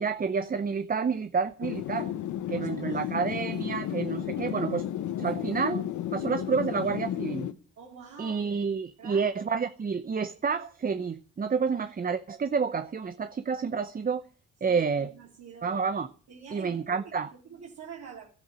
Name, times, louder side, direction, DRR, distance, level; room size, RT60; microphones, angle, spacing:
voice 1, 0.0-2.1 2.5-4.8 5.2-5.8 6.1-7.5 8.2-14.2 14.6-15.1 15.6-16.1 16.5-17.3, right 5 dB, 30° right, 0.8 m, -29 dB
sound 1, 1.6-7.5, left 11 dB, 75° left, 1.1 m, -33 dB
voice 2, 2.5-3.1 7.8-8.7 9.0-9.3 14.6-15.8 16.3-17.1 17.4-18.3, right 7 dB, 60° right, 3.1 m, -46 dB
12.5 x 8.4 x 8.9 m
cardioid pair, 90°, 30 cm